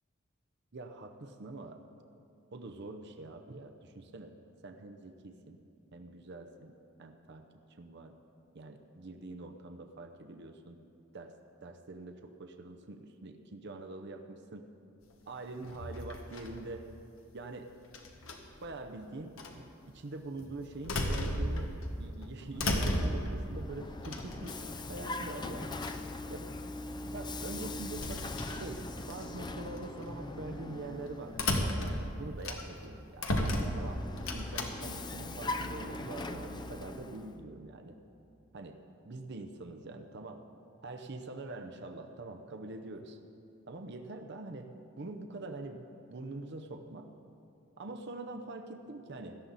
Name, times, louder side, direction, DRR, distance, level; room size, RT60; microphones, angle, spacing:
voice 1, 0.7-1.8 2.5-4.3 4.6-5.6 5.9-7.5 7.8-8.1 8.5-10.8 11.1-11.3 11.6-14.7 15.3-16.9 17.3-17.7 18.6-24.6 24.9-25.7 26.3-26.5 27.0-34.0 34.3-38.0 38.5-38.8 39.0-40.4 40.8-43.2 43.7-47.1 47.8-49.4, right 2 dB, 60° right, 5 dB, 0.7 m, -44 dB
sound 1, 15.6-16.6 17.9-18.6 19.4-19.5 20.4-21.9 22.2-23.4 24.0-24.8 25.4-25.5 25.7-26.1 27.7-29.2 29.8-30.0 31.3-32.9 33.2-34.7, left 1 dB, 85° left, 1.4 m, -34 dB
Vehicle, 23.3-31.8 33.5-37.4, left 2 dB, 20° left, 0.5 m, -41 dB
17.5 x 12.5 x 4.1 m, 2.7 s
head